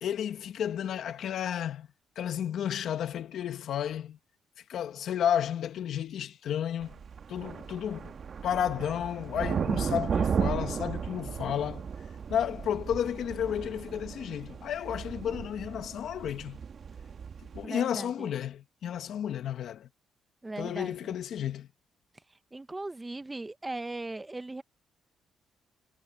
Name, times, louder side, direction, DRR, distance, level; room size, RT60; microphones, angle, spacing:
voice 1, 0.0-1.9 2.1-4.2 4.7-7.0 7.3-8.1 8.4-11.8 12.3-16.6 17.5-19.9 20.6-21.7, left 9 dB, 70° left, 1.4 m, -32 dB
sound 1, 6.8-17.6, right 6 dB, 50° right, 1.5 m, -35 dB
voice 2, 17.6-18.3 20.4-21.1 22.5-24.6, right 2 dB, 15° right, 1.1 m, -38 dB
cardioid pair, 90°, 0 cm